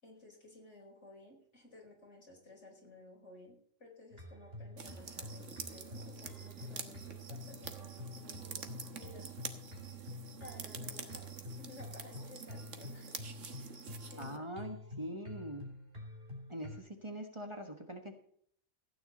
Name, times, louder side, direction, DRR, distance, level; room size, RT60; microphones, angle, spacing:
voice 1, 0.0-9.3 10.4-11.3 11.6-13.9 14.1-14.5 15.0-15.2, left 2 dB, 70° left, -1 dB, 5.1 m, -56 dB
sound 1, 4.1-16.8, left 1 dB, 50° right, 3.5 m, -48 dB
sound 2, 4.8-14.4, right 5 dB, 80° right, 1.7 m, -47 dB
voice 2, 14.2-15.7 16.5-18.1, equal, 25° right, 4 dB, 1.5 m, -43 dB
15.5 x 9.4 x 4.2 m, 0.62 s
omnidirectional pair, 1.3 m